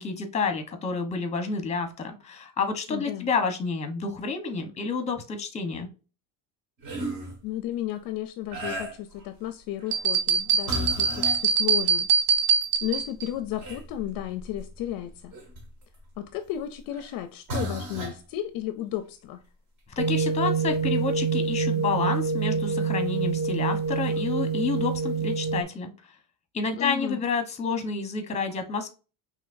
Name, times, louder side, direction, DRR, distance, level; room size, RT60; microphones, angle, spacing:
voice 1, 0.0-5.9 20.0-25.9 26.5-28.9, left 4 dB, 15° left, 0.8 m, -29 dB
voice 2, 2.9-3.3 7.4-12.1 12.8-15.3 16.2-19.4 26.7-27.2, left 12 dB, 55° left, 0.5 m, -33 dB
sound 1, 6.8-7.4 8.5-9.2 9.8-10.1 10.6-11.4 12.3-12.4 12.8-16.0 16.9-17.1 17.5-18.2 21.4-21.5 23.2-23.3 24.0-24.2, right 1 dB, 45° right, 1.7 m, -35 dB
sound 2, 9.9-13.3, right 6 dB, 60° right, 0.8 m, -23 dB
sound 3, 20.0-25.6, right 5 dB, 25° right, 0.6 m, -26 dB
5.6 x 3.1 x 2.5 m
cardioid pair, 140°, 44 cm